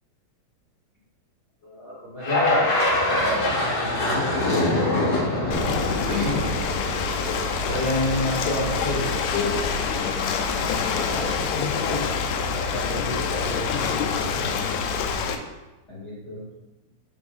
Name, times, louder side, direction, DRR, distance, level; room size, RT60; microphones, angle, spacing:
voice 1, 1.6-2.7 3.0-4.8 5.1-5.8 6.0-6.4 7.6-9.6 10.7-10.8 11.1-14.7 15.9-16.4, left 2 dB, 30° left, -9 dB, 2.0 m, -30 dB
sound 1, 2.2-7.5, left 2 dB, 50° left, 1.8 m, -24 dB
Ocean, 5.5-15.4, left 5 dB, 80° left, 2.4 m, -26 dB
sound 2, 5.8-11.4, right 2 dB, 80° right, 3.3 m, -38 dB
14.5 x 5.4 x 2.6 m, 1.1 s
omnidirectional pair, 5.0 m